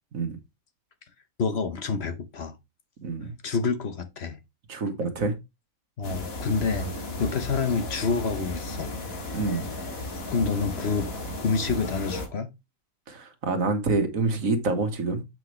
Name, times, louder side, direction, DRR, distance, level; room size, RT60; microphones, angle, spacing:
voice 1, 1.4-2.6 3.4-4.4 6.0-6.9 7.2-8.9 10.3-11.1 11.4-12.5, left 5 dB, 55° left, 1.0 m, -27 dB
voice 2, 3.0-3.4 4.7-5.3 9.3-9.6 13.1-15.2, right 3 dB, 75° right, 1.8 m, -27 dB
sound 1, 6.0-12.3, left 1 dB, 90° left, 2.2 m, -34 dB
7.7 x 6.0 x 3.1 m
omnidirectional pair, 1.4 m